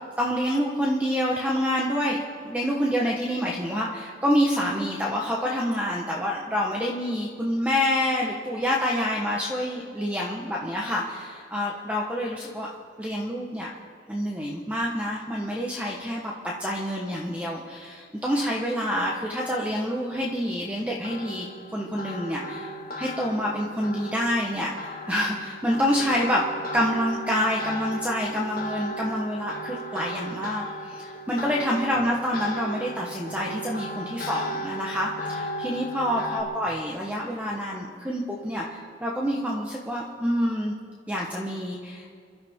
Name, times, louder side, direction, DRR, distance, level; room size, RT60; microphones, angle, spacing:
voice 1, 0.2-12.7 13.0-13.7 14.1-21.5 21.7-26.4 26.7-40.8 41.1-42.1, equal, 10° right, -3 dB, 1.0 m, -27 dB
sound 1, 20.0-36.4, equal, 50° left, 1.7 m, -36 dB
27.5 x 12.0 x 3.6 m, 2.3 s
head